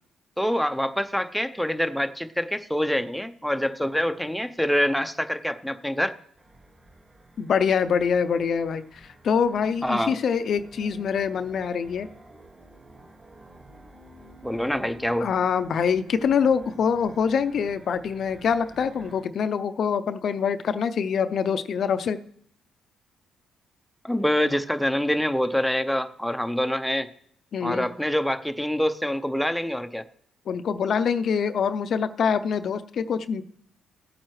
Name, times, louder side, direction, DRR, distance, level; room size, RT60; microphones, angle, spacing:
voice 1, 0.4-6.1 9.8-10.2 14.4-15.3 24.0-27.1 27.6-30.0, equal, ahead, 8 dB, 0.6 m, -25 dB
sound 1, 6.3-19.2, right 1 dB, 35° right, 3.9 m, -50 dB
voice 2, 7.4-12.1 15.2-22.2 27.5-27.9 30.5-33.4, left 6 dB, 60° left, 11 dB, 0.5 m, -25 dB
16.5 x 8.8 x 3.2 m, 0.66 s
cardioid pair, 90°, 0 cm